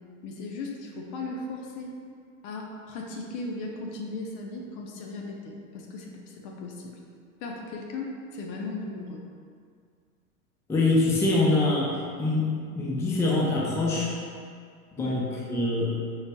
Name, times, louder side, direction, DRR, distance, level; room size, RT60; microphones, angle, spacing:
voice 1, 0.2-1.9 2.4-7.0 7.4-9.2 15.0-15.1, left 3 dB, 45° left, 0 dB, 0.7 m, -37 dB
voice 2, 10.7-11.9 12.2-14.1 15.0-15.9, left 2 dB, 5° left, -5 dB, 0.5 m, -24 dB
4.7 x 3.9 x 2.2 m, 2.1 s
hypercardioid pair, 95°, 45 cm